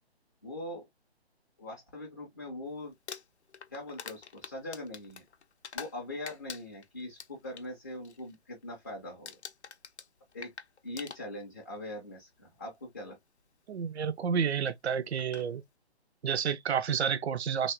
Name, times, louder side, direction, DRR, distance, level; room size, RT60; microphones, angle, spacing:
voice 1, 0.4-0.9 1.6-2.9 3.7-5.2 5.7-9.4 10.3-10.5 10.8-13.2, left 1 dB, 15° left, 0.4 m, -41 dB
Crumpling crinkling, 2.9-6.0 6.3-7.7 8.0-8.4 8.6-8.9 9.3-11.6 12.6-12.7 14.7-14.8 15.2-15.5, left 6 dB, 85° left, 0.6 m, -45 dB
voice 2, 13.7-15.6 16.2-17.7, right 7 dB, 75° right, 0.5 m, -30 dB
3.3 x 2.2 x 2.4 m
figure-of-eight pair, 140°, 33 cm